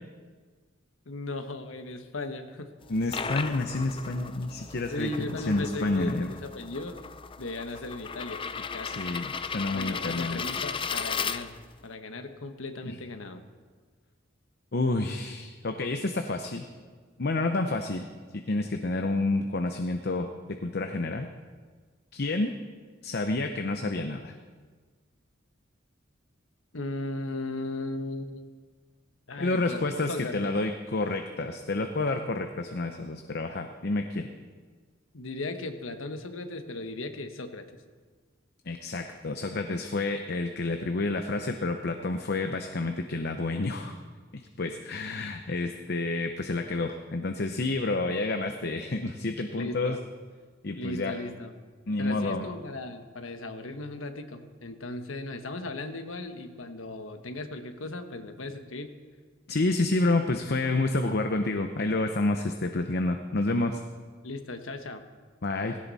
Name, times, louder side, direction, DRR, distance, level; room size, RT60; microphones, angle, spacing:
voice 1, 1.1-2.7 4.9-7.0 7.4-8.4 8.7-9.0 9.7-11.5 11.8-13.4 26.7-28.5 29.3-29.8 30.1-30.5 35.1-37.7 49.5-50.0 50.8-51.5 52.0-58.9 64.2-65.0, left 2 dB, 85° left, 7 dB, 1.2 m, -37 dB
sound 1, 2.8-11.8, left 6 dB, 25° left, 0.5 m, -36 dB
voice 2, 2.9-6.3 8.8-10.4 12.9-13.0 14.7-16.7 17.2-18.1 18.3-21.3 22.1-22.6 23.0-24.3 29.4-34.3 38.7-44.0 44.3-50.0 50.6-51.2 51.9-52.5 59.5-63.8 65.4-65.8, left 2 dB, 55° left, 6 dB, 0.8 m, -29 dB
17.0 x 17.0 x 4.2 m, 1.5 s
head